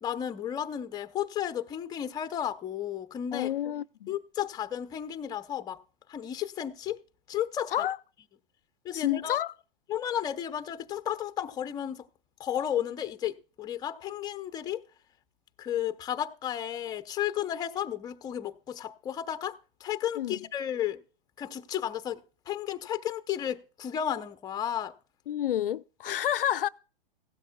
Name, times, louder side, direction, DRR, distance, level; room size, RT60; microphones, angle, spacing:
voice 1, 0.0-3.5 4.1-5.8 6.1-7.0 7.3-7.7 8.8-9.4 9.9-12.1 12.4-14.8 15.6-21.0 21.4-24.9, left 10 dB, 15° left, 0.6 m, -33 dB
voice 2, 3.3-4.1 7.7-8.0 8.9-9.5 20.2-20.4 25.3-26.7, left 11 dB, 70° left, 0.5 m, -29 dB
16.0 x 12.5 x 2.2 m
figure-of-eight pair, 110°, 29 cm